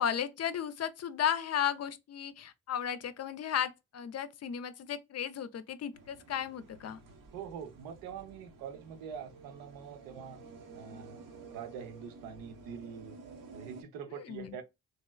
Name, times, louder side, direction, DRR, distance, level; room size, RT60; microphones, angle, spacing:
voice 1, 0.0-7.0 14.1-14.6, left 9 dB, 45° left, 0.5 m, -34 dB
sound 1, 5.9-13.8, right 4 dB, 60° right, 0.9 m, -52 dB
voice 2, 7.3-10.4 10.7-11.2 11.5-13.2 13.5-14.6, right 7 dB, 80° right, 0.6 m, -44 dB
3.0 x 2.8 x 2.2 m
hypercardioid pair, 45°, 37 cm